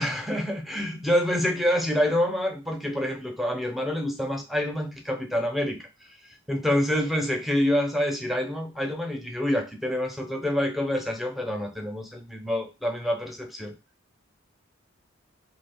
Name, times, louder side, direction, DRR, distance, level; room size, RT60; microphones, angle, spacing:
voice 1, 0.0-5.9 6.5-13.7, left 1 dB, ahead, 3 dB, 0.5 m, -27 dB
2.7 x 2.3 x 3.4 m, 0.28 s
head